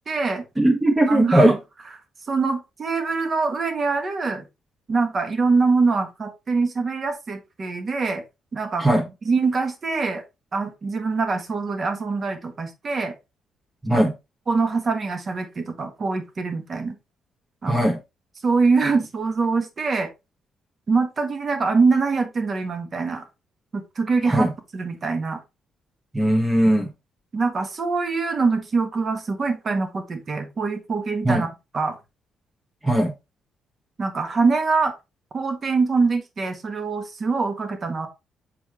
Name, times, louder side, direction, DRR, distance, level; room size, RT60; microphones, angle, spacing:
voice 1, 0.1-0.4 1.1-1.6 2.3-4.4 4.9-8.2 8.5-8.9 9.2-10.2 10.5-13.1 13.9-14.0 14.5-17.0 17.6-17.9 18.4-20.1 20.9-23.2 23.7-25.4 27.3-32.0 34.0-34.9 35.3-38.1, right 4 dB, 40° right, 1.5 m, -24 dB
voice 2, 0.6-1.5 8.8-9.0 13.8-14.1 17.6-18.0 24.3-24.5 26.1-26.9 31.2-31.4 32.8-33.1, right 1 dB, 15° right, 1.4 m, -19 dB
6.8 x 4.7 x 3.1 m
cardioid pair, 85°, 0 cm